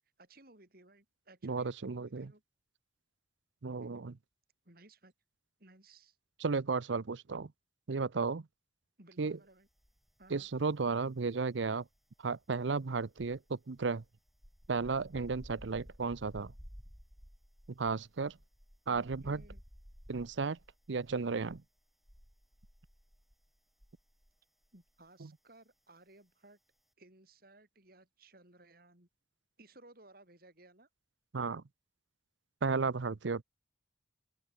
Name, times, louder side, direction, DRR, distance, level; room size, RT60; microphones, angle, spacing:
voice 1, 0.2-2.4 3.8-4.1 4.7-5.1 5.6-6.2 9.0-9.7 10.2-10.5 18.9-19.6 24.7-26.6 27.0-29.1 29.6-30.9, right 2 dB, 50° right, 5.3 m, -59 dB
voice 2, 1.4-2.3 3.6-4.1 6.4-7.5 7.9-8.5 9.2-9.4 10.3-11.9 12.2-14.0 14.7-16.5 17.8-18.4 18.9-19.4 20.1-20.6 20.9-21.6 25.2-25.3 31.3-31.6 32.6-33.4, right 4 dB, 75° right, 0.7 m, -34 dB
sound 1, 9.8-10.6 10.8-24.4 24.6-24.9, equal, ahead, 4.2 m, -55 dB
open air
head